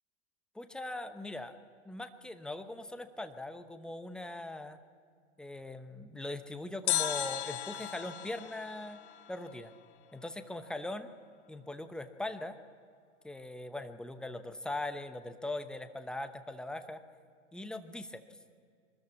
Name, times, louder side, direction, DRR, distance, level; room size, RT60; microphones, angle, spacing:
voice 1, 0.5-1.6 1.8-4.8 5.4-9.0 9.3-9.7 10.1-11.1 11.5-12.6 13.2-17.0 17.5-18.2, left 2 dB, ahead, 9 dB, 0.9 m, -40 dB
sound 1, 6.9-10.0 10.2-10.3, left 12 dB, 60° left, 1.6 m, -36 dB
23.5 x 13.5 x 9.5 m, 2.2 s
hypercardioid pair, 125°, 38 cm